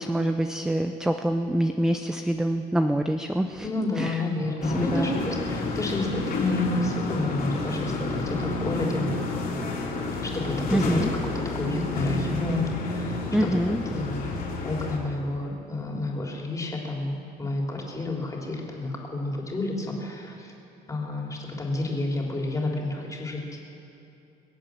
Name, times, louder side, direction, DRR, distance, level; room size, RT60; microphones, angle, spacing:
voice 1, 0.0-3.7 4.0-4.2 4.6-5.1 10.7-11.1 13.3-13.8, right 1 dB, 5° right, 7 dB, 0.6 m, -25 dB
voice 2, 3.6-9.1 10.2-11.0 11.5-13.5 13.9-14.3 14.6-20.5 20.9-23.6, left 2 dB, 20° left, -1 dB, 3.2 m, -30 dB
sound 1, 4.6-15.0, left 2 dB, 60° left, 3.6 m, -30 dB
23.5 x 8.1 x 7.5 m, 2.8 s
cardioid pair, 110°, 17 cm